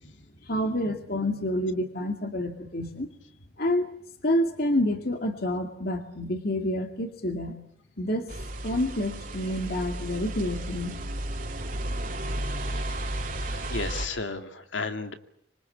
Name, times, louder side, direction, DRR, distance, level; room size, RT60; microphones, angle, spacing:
voice 1, 0.4-3.1 3.6-3.9 4.2-7.6 8.0-8.3 8.6-10.9, left 1 dB, 55° left, 5 dB, 2.4 m, -28 dB
sound 1, 8.3-14.1, right 1 dB, 45° right, 2.8 m, -33 dB
voice 2, 12.5-13.1 13.4-15.1, left 3 dB, 80° left, 7 dB, 2.5 m, -35 dB
26.0 x 25.0 x 8.7 m, 0.70 s
head